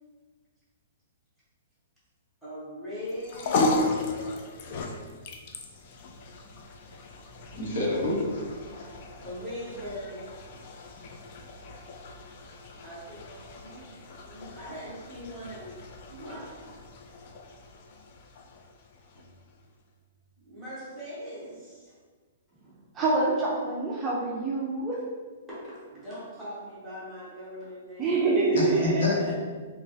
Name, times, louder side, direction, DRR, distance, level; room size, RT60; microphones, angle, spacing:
voice 1, 2.4-4.5 9.2-10.3 12.8-15.8 16.1-16.6 19.1-19.3 20.4-22.0 25.5-28.2 28.4-28.9, equal, ahead, -12 dB, 1.3 m, -41 dB
sound 1, 3.1-19.6, left 2 dB, 40° left, 0.4 m, -36 dB
voice 2, 7.5-8.8 28.5-29.3, left 2 dB, 70° left, -4 dB, 1.1 m, -28 dB
voice 3, 22.9-25.0 28.0-29.3, right 3 dB, 15° right, -5 dB, 0.5 m, -26 dB
3.3 x 3.0 x 2.7 m, 1.5 s
hypercardioid pair, 160°, 0 cm